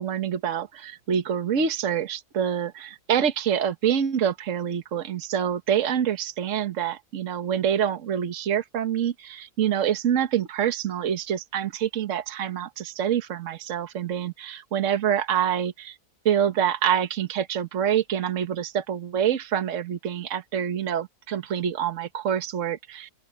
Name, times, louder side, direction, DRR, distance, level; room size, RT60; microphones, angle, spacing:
voice 1, 0.0-16.0 16.2-23.1, right 9 dB, 55° right, 1.5 m, -26 dB
open air
omnidirectional pair, 1.6 m